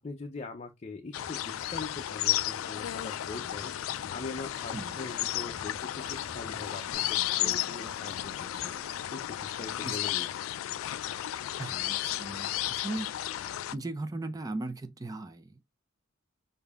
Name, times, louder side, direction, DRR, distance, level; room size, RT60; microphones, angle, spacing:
voice 1, 0.0-8.3 8.6-8.8 9.1-10.3, left 3 dB, 30° left, 0.5 m, -42 dB
sound 1, 1.1-13.8, left 13 dB, 90° left, 0.3 m, -33 dB
sound 2, 1.2-1.3 1.5-6.9, left 1 dB, ahead, 1.9 m, -52 dB
sound 3, 4.2-9.8, right 2 dB, 85° right, 1.0 m, -56 dB
voice 2, 11.6-13.1 13.7-15.7, right 2 dB, 20° right, 0.4 m, -38 dB
6.7 x 2.6 x 2.4 m
head